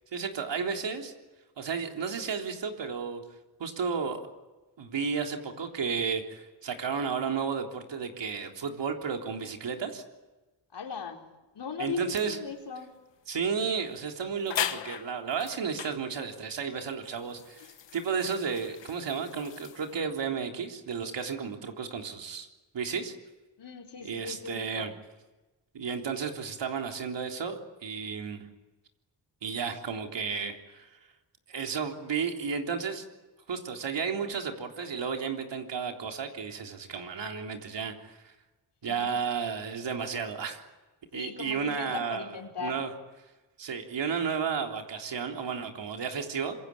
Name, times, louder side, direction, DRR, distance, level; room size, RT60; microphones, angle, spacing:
voice 1, 0.1-1.1 1.6-3.2 3.6-4.2 4.8-10.0 11.8-12.4 13.3-22.5 22.7-23.2 24.0-24.9 25.7-28.5 29.4-30.9 31.5-33.0 33.5-38.3 38.8-40.6 41.1-42.3 42.6-42.9 43.6-46.6, right 6 dB, 80° right, 3 dB, 3.7 m, -33 dB
voice 2, 10.7-11.3 11.5-13.0 23.6-24.9 38.8-39.1 41.1-42.8, left 6 dB, 70° left, 2 dB, 4.5 m, -38 dB
sound 1, 12.1-12.3 13.5-13.7 13.9-14.0 14.5-16.0 16.7-20.0, left 9 dB, 85° left, 1.6 m, -38 dB
26.5 x 23.5 x 8.6 m, 1.1 s
wide cardioid pair, 100°, 43 cm